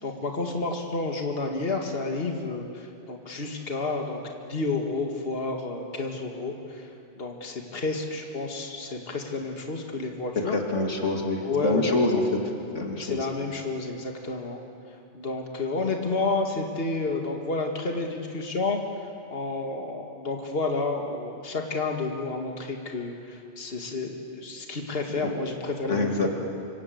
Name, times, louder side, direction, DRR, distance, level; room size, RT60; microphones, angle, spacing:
voice 1, 0.0-4.2 4.5-6.9 7.2-10.5 11.4-12.0 13.0-14.6 15.1-18.8 19.3-26.3, left 3 dB, 55° left, 2 dB, 2.3 m, -30 dB
voice 2, 10.4-12.2 12.7-13.2 25.1-25.3 25.9-26.3, left 2 dB, 90° left, 1 dB, 3.0 m, -26 dB
26.5 x 26.0 x 7.9 m, 2.5 s
omnidirectional pair, 1.2 m